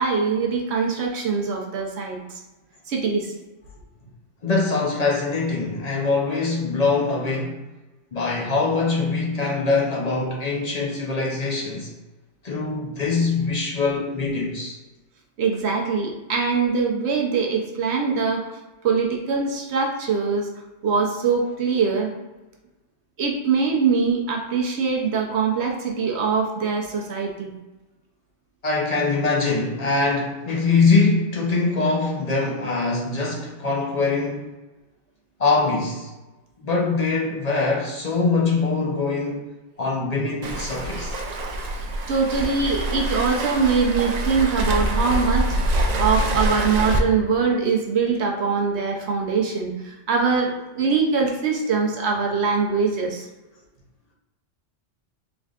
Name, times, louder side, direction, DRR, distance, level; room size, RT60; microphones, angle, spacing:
voice 1, 0.0-2.4 2.9-3.3 15.4-18.5 18.8-20.5 20.8-22.1 23.2-27.5 42.1-45.5 46.0-53.3, right 5 dB, 65° right, 0.9 m, -23 dB
voice 2, 4.4-7.6 8.1-11.9 12.4-14.8 28.6-34.5 35.4-36.1 36.6-39.5 39.8-41.2, left 3 dB, 45° left, 0.6 m, -23 dB
Waves surf, 40.4-47.0, right 1 dB, 80° right, 0.3 m, -25 dB
3.7 x 3.3 x 2.4 m
omnidirectional pair, 1.3 m